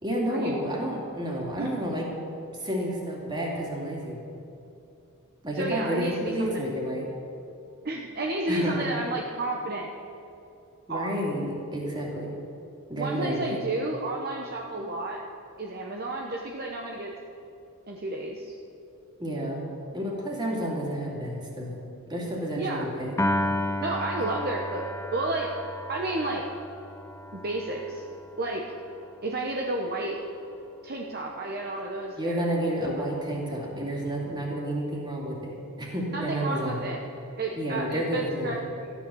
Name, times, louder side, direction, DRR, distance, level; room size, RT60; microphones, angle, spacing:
voice 1, 0.0-2.1 2.5-4.2 5.4-7.1 8.5-8.8 10.9-12.4 12.9-13.6 19.2-19.6 19.9-21.7 22.1-23.2 32.2-37.0 37.6-38.6, equal, 20° right, -2 dB, 2.7 m, -30 dB
voice 2, 5.5-6.5 7.8-9.9 10.9-11.1 13.0-15.2 15.6-17.1 17.9-18.5 22.6-22.9 23.8-25.5 25.9-26.4 27.3-28.0 28.4-28.6 29.2-30.2 30.8-32.4 32.9-33.0 36.1-37.0 37.4-38.9, right 2 dB, 45° right, 0 dB, 1.0 m, -31 dB
Piano, 23.2-29.6, left 1 dB, 15° left, 0.6 m, -33 dB
14.5 x 10.5 x 7.0 m, 2.8 s
head